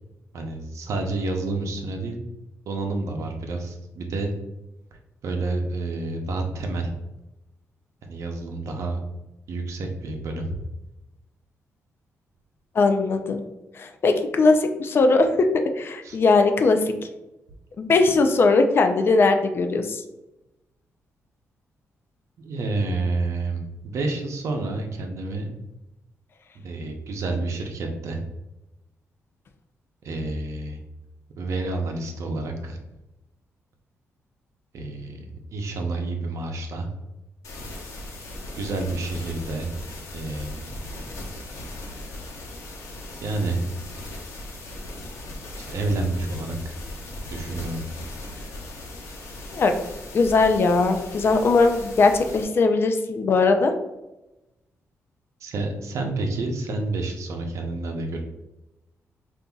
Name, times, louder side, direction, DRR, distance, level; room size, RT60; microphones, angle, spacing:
voice 1, 0.3-2.2 2.7-4.3 5.2-6.9 8.0-9.0 9.5-10.6 16.0-16.2 22.4-25.5 26.5-28.2 30.0-30.8 31.4-32.8 34.7-35.2 35.5-36.9 38.5-39.7 40.1-40.6 43.2-43.6 45.6-46.7 47.3-47.8 55.4-58.2, right 2 dB, 70° right, 3 dB, 0.7 m, -29 dB
voice 2, 12.8-13.4 13.8-15.3 15.8-16.9 17.8-20.0 49.5-49.7 50.1-53.7, left 3 dB, 45° left, 6 dB, 0.4 m, -19 dB
sound 1, 37.4-52.4, left 1 dB, 75° left, 0.9 m, -38 dB
5.3 x 2.6 x 2.3 m, 0.96 s
cardioid pair, 110°, 5 cm